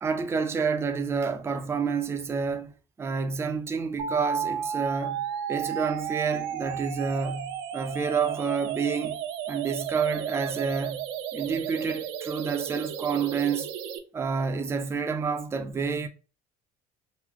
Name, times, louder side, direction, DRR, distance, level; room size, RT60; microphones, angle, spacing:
voice 1, 0.0-9.2 9.5-11.1 11.3-13.7 14.1-16.1, right 5 dB, 15° right, 0.4 m, -29 dB
sound 1, 4.0-14.0, right 8 dB, 80° right, 0.5 m, -33 dB
3.0 x 2.0 x 3.6 m
cardioid pair, 130°, 19 cm